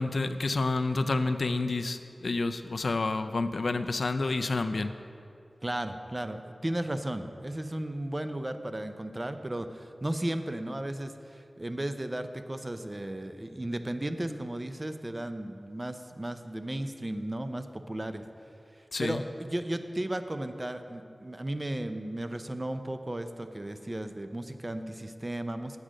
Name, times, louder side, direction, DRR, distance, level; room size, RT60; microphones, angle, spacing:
voice 1, 0.0-4.9 18.9-19.2, left 3 dB, 70° left, 9 dB, 0.4 m, -29 dB
voice 2, 5.6-18.2 19.0-25.8, right 1 dB, 25° right, 8 dB, 0.5 m, -35 dB
8.2 x 7.4 x 5.0 m, 2.5 s
wide cardioid pair, 80°, 0 cm